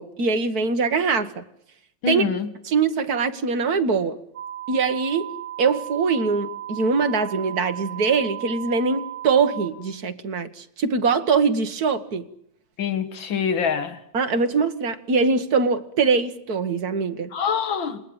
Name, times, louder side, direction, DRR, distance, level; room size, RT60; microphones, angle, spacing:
voice 1, 0.0-1.4 2.1-2.2 2.7-4.2 4.7-5.3 5.6-12.3 14.1-17.3, right 5 dB, 55° right, 1.9 m, -22 dB
voice 2, 2.0-2.5 12.8-14.0 17.3-18.0, left 6 dB, 80° left, 2.4 m, -25 dB
sound 1, 4.3-9.7, right 12 dB, 70° right, 3.8 m, -35 dB
27.5 x 20.5 x 8.8 m
omnidirectional pair, 2.1 m